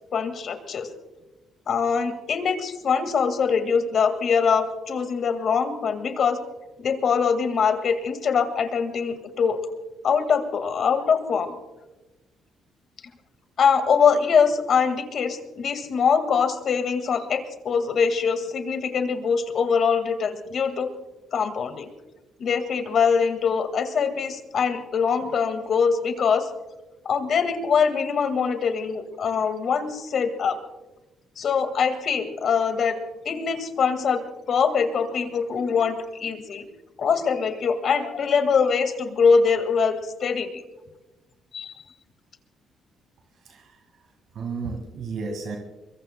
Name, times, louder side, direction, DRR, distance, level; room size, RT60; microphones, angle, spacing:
voice 1, 0.1-0.9 1.7-6.4 6.8-9.6 10.0-11.5 13.6-20.9 21.3-21.9 22.4-26.5 27.1-30.6 31.4-33.0 33.3-36.6 37.0-40.0 40.2-40.5 41.5-41.7, left 6 dB, 60° left, 9 dB, 1.9 m, -23 dB
voice 2, 43.5-43.8 44.3-45.6, right 4 dB, 70° right, 3 dB, 1.9 m, -32 dB
23.0 x 22.5 x 2.2 m, 1.1 s
cardioid pair, 90°, 0 cm